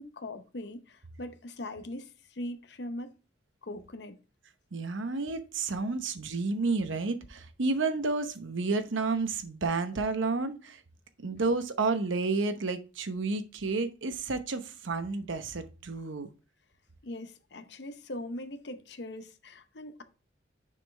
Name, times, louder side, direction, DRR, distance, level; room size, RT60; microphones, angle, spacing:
voice 1, 0.0-3.1 3.6-4.2 17.0-20.0, left 1 dB, 60° left, 0.8 m, -41 dB
voice 2, 4.7-10.8 11.2-16.3, right 3 dB, 85° right, 0.8 m, -31 dB
6.6 x 5.4 x 3.3 m
head